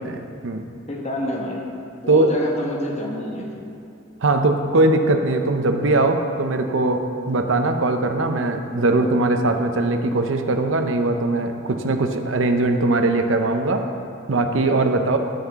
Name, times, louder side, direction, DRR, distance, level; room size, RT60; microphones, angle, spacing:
voice 1, 0.9-1.6 2.0-3.7, left 1 dB, 35° left, -1 dB, 1.4 m, -28 dB
voice 2, 4.2-13.9 14.3-15.2, right 2 dB, 85° right, 6 dB, 0.7 m, -20 dB
16.5 x 5.7 x 3.6 m, 2.6 s
head